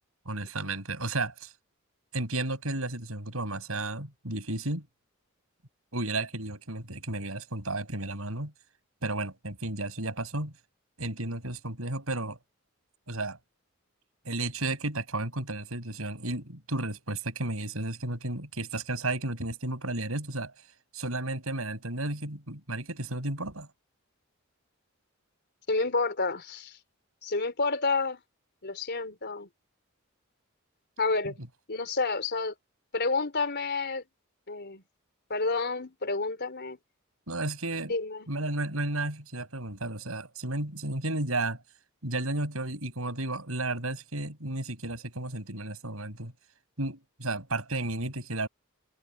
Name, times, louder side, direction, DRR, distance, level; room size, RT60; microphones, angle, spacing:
voice 1, 0.3-1.5 2.1-4.8 5.9-8.5 9.0-10.5 11.0-12.4 13.1-13.4 14.2-20.5 20.9-23.7 37.3-37.9 38.3-41.6 42.0-46.3 46.8-48.5, right 2 dB, 80° right, 7.4 m, -33 dB
voice 2, 25.7-26.8 27.2-28.2 28.6-29.5 31.0-31.4 31.7-32.5 32.9-34.0 34.5-34.8 35.3-36.8 37.9-38.3, left 3 dB, 55° left, 4.2 m, -29 dB
head